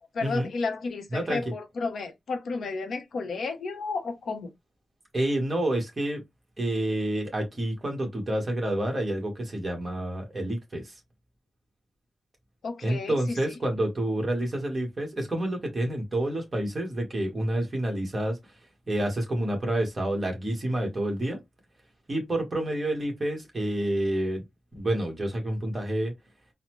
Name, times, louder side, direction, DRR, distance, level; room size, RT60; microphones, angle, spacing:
voice 1, 0.1-4.5 12.6-13.2, left 4 dB, 70° left, 0.7 m, -32 dB
voice 2, 5.1-6.2 6.6-10.9 12.8-18.4 18.9-21.4 22.1-24.4 24.7-26.1, right 1 dB, 25° right, 1.3 m, -28 dB
3.9 x 2.1 x 3.0 m
wide cardioid pair, 165°, 0 cm